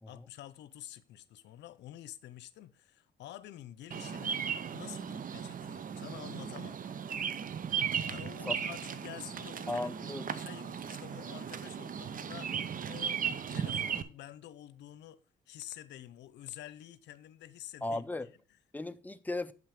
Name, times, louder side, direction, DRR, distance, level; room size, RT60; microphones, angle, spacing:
voice 1, 0.1-4.4 4.7-6.8 8.1-15.2 15.5-18.6, left 13 dB, 85° left, 0.6 m, -49 dB
Bird vocalization bird call bird song, 3.9-14.0, right 7 dB, 50° right, 0.7 m, -36 dB
voice 2, 9.7-10.2 17.8-18.3 18.7-19.5, left 2 dB, 10° left, 0.6 m, -36 dB
7.9 x 5.7 x 5.2 m
cardioid pair, 65°, 18 cm